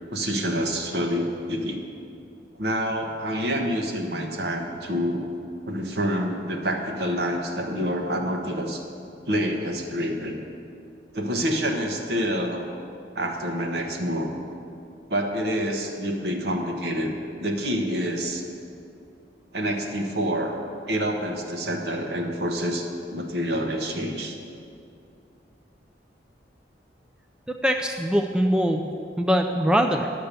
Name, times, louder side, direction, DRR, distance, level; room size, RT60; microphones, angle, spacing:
voice 1, 0.1-1.8 2.5-5.2 5.6-8.8 9.2-10.4 11.1-12.6 13.1-14.3 15.1-18.4 19.5-20.6 20.9-24.3, equal, 65° right, 2 dB, 1.2 m, -27 dB
voice 2, 27.5-28.9 29.2-30.1, equal, 5° right, 3 dB, 0.4 m, -22 dB
10.5 x 6.7 x 6.8 m, 2.5 s
head